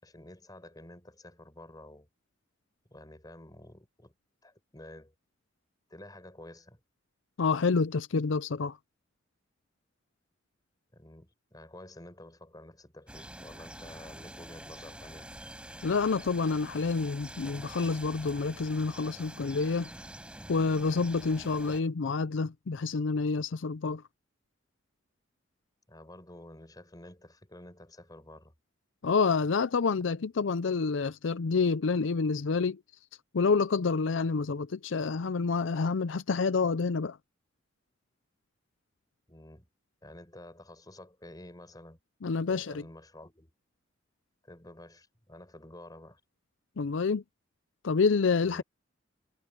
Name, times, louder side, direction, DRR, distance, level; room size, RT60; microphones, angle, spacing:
voice 1, 0.0-2.1 2.9-4.1 4.4-5.1 5.9-6.8 10.9-15.3 25.9-28.5 39.3-39.7 40.0-42.0 42.4-43.5 44.4-46.2 48.4-48.6, left 1 dB, 20° left, 5.3 m, -50 dB
voice 2, 7.4-8.8 15.8-19.9 20.5-24.0 29.0-32.8 33.3-37.2 42.2-42.7 46.8-47.2 47.8-48.6, left 4 dB, 75° left, 0.5 m, -28 dB
sound 1, 13.1-21.8, right 1 dB, 5° right, 6.2 m, -46 dB
head